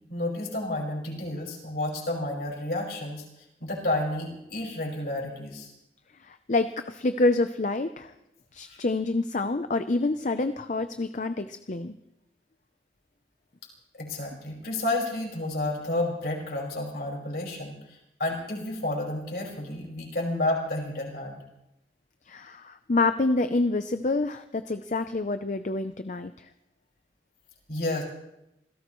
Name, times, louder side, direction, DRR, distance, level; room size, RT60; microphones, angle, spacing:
voice 1, 0.1-3.2 3.6-5.7 8.7-8.8 13.9-21.4 27.7-28.0, left 1 dB, 60° left, -1 dB, 5.2 m, -31 dB
voice 2, 6.3-8.1 8.5-11.9 22.3-26.3, left 2 dB, 45° left, 9 dB, 0.6 m, -27 dB
27.0 x 17.0 x 3.1 m, 0.85 s
head